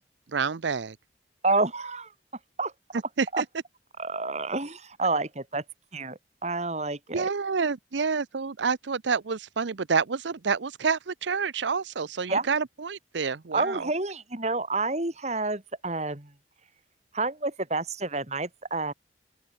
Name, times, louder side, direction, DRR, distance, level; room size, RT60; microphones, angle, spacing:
voice 1, 0.3-1.0 3.2-3.4 7.1-13.9, right 5 dB, 80° right, 0.7 m, -28 dB
voice 2, 1.4-2.1 2.6-2.7 3.3-3.4 4.0-5.6 5.9-7.3 12.3-12.5 13.5-16.3 17.1-18.9, right 3 dB, 40° right, 2.5 m, -29 dB
open air
head